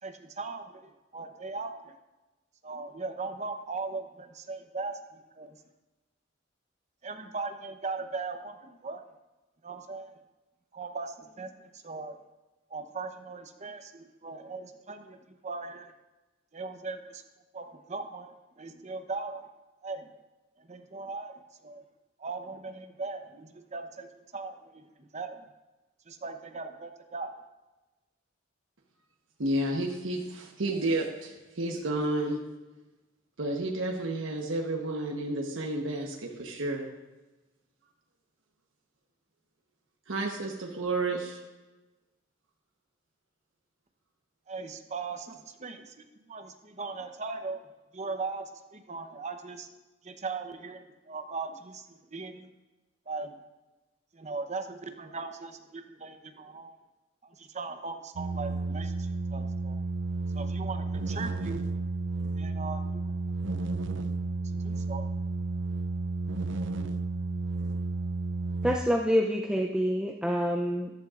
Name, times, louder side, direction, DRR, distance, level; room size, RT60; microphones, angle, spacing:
voice 1, 0.0-1.9 2.6-5.6 7.0-9.1 9.6-10.2 10.7-12.2 12.7-15.9 16.5-17.2 17.5-19.5 19.8-20.1 20.6-21.8 22.2-25.5 26.1-27.3 44.5-47.6 47.9-49.7 50.0-52.5 53.1-53.3 54.1-56.8 57.2-59.8 60.3-61.7 62.3-63.1 64.4-65.1, right 4 dB, 35° right, 7 dB, 0.9 m, -39 dB
voice 2, 29.4-32.4 33.4-36.9 40.1-41.4, right 2 dB, 90° right, 0 dB, 1.1 m, -31 dB
sound 1, 58.2-68.8, right 3 dB, 70° right, 0.5 m, -32 dB
voice 3, 68.6-70.9, equal, 5° right, 1 dB, 0.5 m, -27 dB
14.0 x 11.5 x 2.5 m, 1.1 s
head